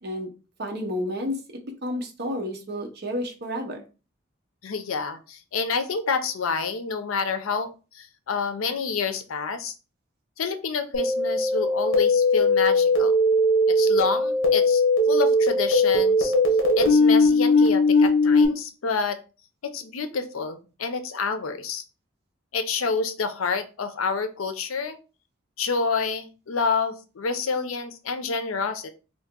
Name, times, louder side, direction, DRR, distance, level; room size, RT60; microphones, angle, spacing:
voice 1, 0.6-1.4 1.8-3.8, left 1 dB, 50° right, 3 dB, 0.7 m, -30 dB
voice 2, 4.6-9.7 10.4-13.1 13.7-16.3 16.8-19.2 19.6-21.8 22.5-25.0 25.6-28.9, left 5 dB, 85° left, 10 dB, 0.5 m, -28 dB
sound 1, 10.9-18.5, left 2 dB, 60° left, 0.9 m, -19 dB
2.8 x 2.6 x 3.6 m, 0.33 s
head